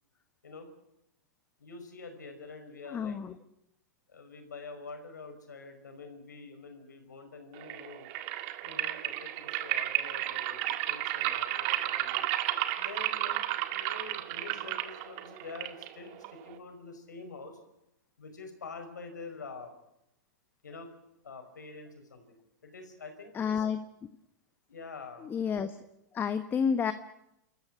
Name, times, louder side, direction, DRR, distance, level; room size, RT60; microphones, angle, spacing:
voice 1, 1.6-3.2 4.1-8.1 8.6-12.3 12.8-13.4 13.7-17.6 18.2-19.7 20.6-20.9 21.2-23.6 24.7-25.3, left 4 dB, 85° left, 6 dB, 5.3 m, -46 dB
voice 2, 2.9-3.3 23.3-23.8 25.2-25.8 26.1-26.9, left 7 dB, 20° left, 11 dB, 1.1 m, -30 dB
sound 1, 7.6-16.6, right 14 dB, 45° right, 1.9 m, -33 dB
28.5 x 14.0 x 9.7 m, 0.84 s
hypercardioid pair, 115°, 9 cm